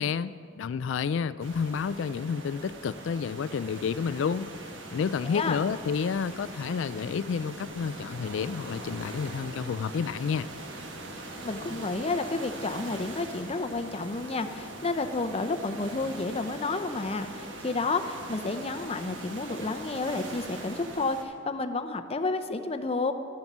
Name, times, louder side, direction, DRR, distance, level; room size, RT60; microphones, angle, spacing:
voice 1, 0.0-4.5 4.9-10.5, left 6 dB, 70° left, 15 dB, 0.3 m, -30 dB
sound 1, 1.4-21.2, right 2 dB, 70° right, 1.4 m, -42 dB
voice 2, 5.3-5.6 11.4-23.1, left 3 dB, 30° left, 8 dB, 0.6 m, -31 dB
12.5 x 7.9 x 7.3 m, 2.3 s
head